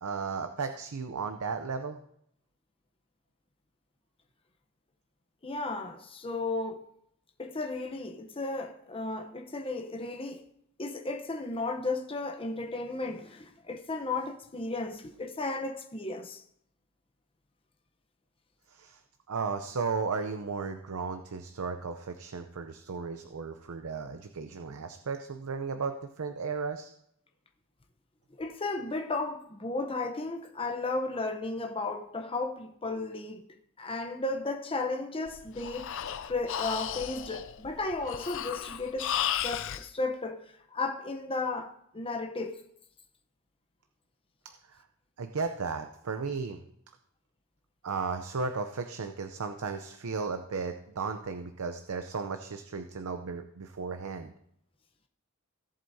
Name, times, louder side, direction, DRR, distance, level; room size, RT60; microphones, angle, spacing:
voice 1, 0.0-2.0 18.7-19.0 19.3-26.9 44.4-44.8 45.2-46.6 47.8-54.3, right 5 dB, 85° right, 0.6 m, -35 dB
voice 2, 5.4-6.8 7.4-10.4 10.8-16.4 28.4-33.5 33.8-35.9 36.3-42.6, left 3 dB, 25° left, 0.8 m, -34 dB
Breathing, 35.3-39.9, left 10 dB, 65° left, 0.4 m, -34 dB
17.5 x 7.6 x 2.7 m
head